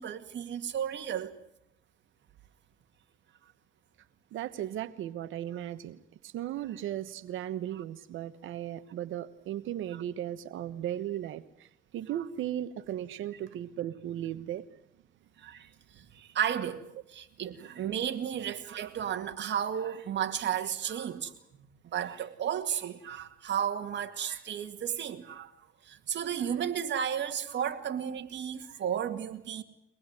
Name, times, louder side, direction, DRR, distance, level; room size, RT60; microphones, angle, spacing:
voice 1, 0.0-1.3 15.4-21.3 21.8-25.5 25.8-29.6, right 9 dB, 65° right, 2.3 m, -33 dB
voice 2, 4.3-14.6, right 11 dB, 80° right, 1.2 m, -36 dB
24.0 x 19.5 x 9.8 m
cardioid pair, 90°, 20 cm